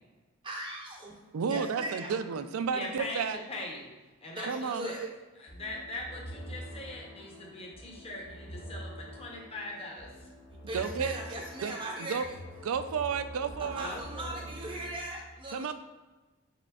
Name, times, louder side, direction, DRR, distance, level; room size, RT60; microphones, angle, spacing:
voice 1, 0.4-1.2 1.5-2.2 4.3-5.1 10.5-12.4 13.6-15.7, right 1 dB, 25° right, -1 dB, 0.5 m, -39 dB
voice 2, 1.3-3.4 4.5-5.1 10.7-11.2 11.6-11.8 12.1-12.2 12.6-13.9 15.5-15.7, right 6 dB, 85° right, 10 dB, 0.4 m, -32 dB
voice 3, 2.7-3.9 4.2-5.0 5.4-10.1 13.8-14.4, left 2 dB, 30° left, -2 dB, 0.7 m, -41 dB
sound 1, 5.5-15.0, equal, 90° left, 1.1 m, -45 dB
4.9 x 4.2 x 2.3 m, 1.2 s
head